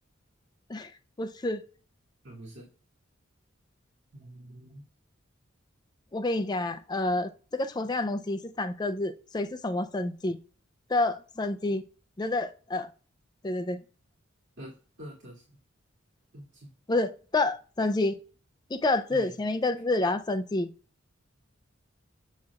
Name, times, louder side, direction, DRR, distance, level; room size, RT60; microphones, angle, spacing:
voice 1, 1.2-1.6 6.1-10.4 10.9-11.8 12.2-12.9 13.4-13.8 16.9-18.2 18.7-20.7, left 2 dB, 20° left, 0.4 m, -28 dB
voice 2, 2.2-2.7 4.1-4.8 14.6-14.7 15.0-15.3 16.3-16.5 19.1-19.3, right 1 dB, 60° right, 2.3 m, -45 dB
7.5 x 6.4 x 2.4 m
head